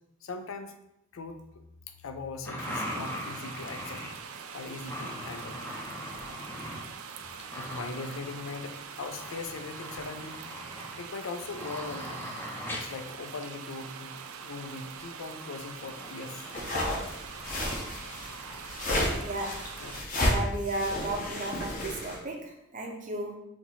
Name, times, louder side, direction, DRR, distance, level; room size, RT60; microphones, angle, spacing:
voice 1, 0.2-0.7 1.1-4.0 4.5-5.6 7.4-10.4 11.0-12.3 12.7-16.5 17.1-17.2 19.8-20.0, left 3 dB, 75° left, 7 dB, 0.5 m, -40 dB
sound 1, 2.4-4.2 4.8-6.9 7.1-8.7 9.0-13.0 14.9-15.0 15.8-18.7 19.5-19.6 19.8-20.0, equal, 10° left, 0.5 m, -41 dB
sound 2, 2.6-20.0, right 6 dB, 90° right, 0.4 m, -44 dB
sound 3, 16.5-22.2, left 1 dB, 40° left, 0.8 m, -31 dB
voice 2, 19.2-19.7 20.3-23.3, right 1 dB, 35° right, 1 dB, 0.6 m, -34 dB
4.3 x 2.8 x 4.1 m, 0.83 s
head